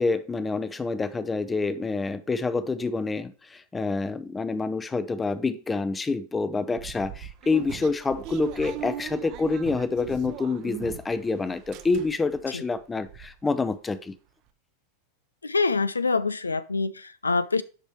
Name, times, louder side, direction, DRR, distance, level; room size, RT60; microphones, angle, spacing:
voice 1, 0.0-14.1, left 3 dB, 15° left, 0.6 m, -27 dB
sound 1, 6.8-11.2 11.5-12.4 12.8-12.9 13.0-13.3, right 10 dB, 40° right, 0.8 m, -39 dB
voice 2, 15.4-17.6, left 4 dB, 80° left, 0.4 m, -25 dB
10.0 x 5.4 x 3.0 m
figure-of-eight pair, 90°, 0 cm